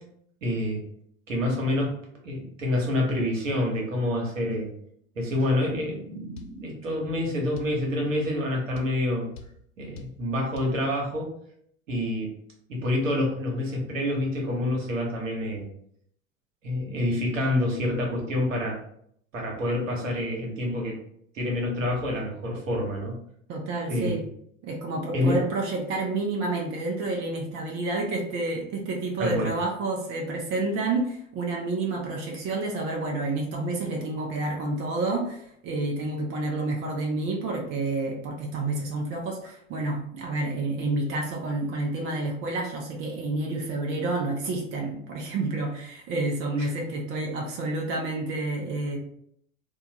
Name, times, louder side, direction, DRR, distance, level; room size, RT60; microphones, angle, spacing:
voice 1, 0.4-0.8 1.3-2.0 2.2-4.7 5.2-9.3 9.8-11.3 11.9-12.3 12.7-15.7 16.6-18.8 19.3-21.0 21.3-23.2 23.9-24.3 25.1-25.4 29.2-29.5 46.6-46.7, left 1 dB, 70° right, -1 dB, 1.1 m, -27 dB
sound 1, 6.4-6.6 7.6-7.8 8.8-9.0 9.4-9.6 10.0-10.2 10.6-10.8, left 5 dB, 55° left, 0.5 m, -43 dB
voice 2, 23.5-24.2 24.6-49.0, right 2 dB, 30° right, 0 dB, 0.7 m, -29 dB
3.5 x 2.3 x 2.9 m, 0.67 s
figure-of-eight pair, 80°, 40 cm